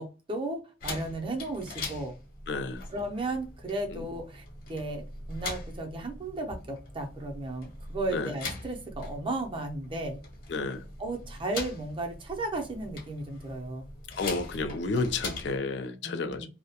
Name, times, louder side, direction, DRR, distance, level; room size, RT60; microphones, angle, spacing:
voice 1, 0.0-2.1 2.9-4.4 4.7-5.0 5.3-10.2 11.0-13.9 16.0-16.5, right 2 dB, 30° right, 0.5 m, -34 dB
sound 1, 0.8-15.6, left 3 dB, 55° left, 0.9 m, -42 dB
voice 2, 2.5-2.8 3.9-4.0 8.1-8.3 10.5-10.8 14.2-16.5, left 3 dB, 70° left, 0.4 m, -31 dB
2.3 x 2.0 x 2.7 m
head